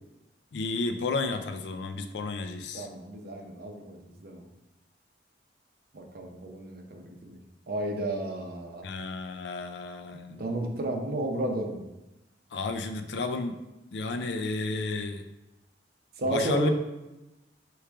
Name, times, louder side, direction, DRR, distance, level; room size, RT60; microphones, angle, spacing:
voice 1, 0.5-2.9 8.8-10.6 12.5-13.6 13.9-15.2 16.2-16.7, left 3 dB, 70° left, 7 dB, 0.4 m, -32 dB
voice 2, 2.7-4.4 5.9-7.4 7.7-8.9 10.4-11.8 16.2-16.7, right 1 dB, 60° right, 2 dB, 0.7 m, -32 dB
4.7 x 3.1 x 3.4 m, 1.0 s
head